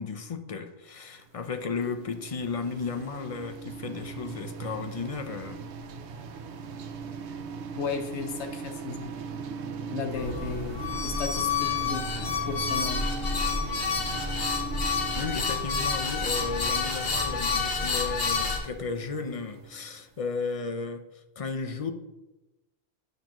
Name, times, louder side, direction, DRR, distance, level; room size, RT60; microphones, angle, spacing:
voice 1, 0.0-5.6 15.1-21.0 21.4-21.9, left 4 dB, 40° left, 7 dB, 0.6 m, -34 dB
sound 1, 1.2-20.2, right 5 dB, 85° right, 0.9 m, -40 dB
voice 2, 7.8-9.1 9.9-13.1, left 5 dB, 85° left, 5 dB, 1.1 m, -35 dB
sound 2, 10.1-18.6, left 4 dB, 60° left, 1.3 m, -29 dB
9.1 x 6.5 x 3.0 m, 0.99 s
omnidirectional pair, 1.1 m